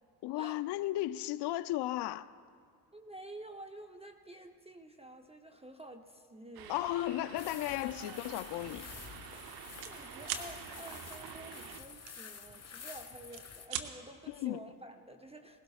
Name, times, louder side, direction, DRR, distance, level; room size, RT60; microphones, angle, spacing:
voice 1, 0.2-2.3 6.7-8.9 14.3-14.6, left 15 dB, 55° left, 15 dB, 0.6 m, -35 dB
voice 2, 2.9-6.9 7.7-8.2 9.8-15.6, right 1 dB, 10° right, 5 dB, 0.7 m, -50 dB
sound 1, 6.5-11.8, right 9 dB, 50° right, 0.8 m, -49 dB
sound 2, 7.4-13.7, left 6 dB, 30° left, 1.5 m, -49 dB
sound 3, 7.9-8.1 8.6-8.8 9.0-9.9 10.2-10.5 12.1-12.8 13.2-13.9, right 10 dB, 90° right, 0.8 m, -40 dB
20.0 x 16.5 x 2.4 m, 2.1 s
hypercardioid pair, 55°, 49 cm